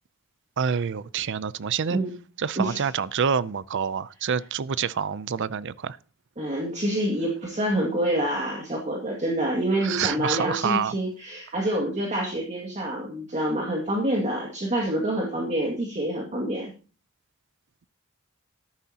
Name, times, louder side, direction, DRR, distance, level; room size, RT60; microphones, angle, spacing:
voice 1, 0.6-2.0 2.4-6.0 9.8-10.9, right 7 dB, 60° right, 0.5 m, -27 dB
voice 2, 6.4-16.7, right 1 dB, 35° right, 2.2 m, -27 dB
13.5 x 11.0 x 2.9 m
head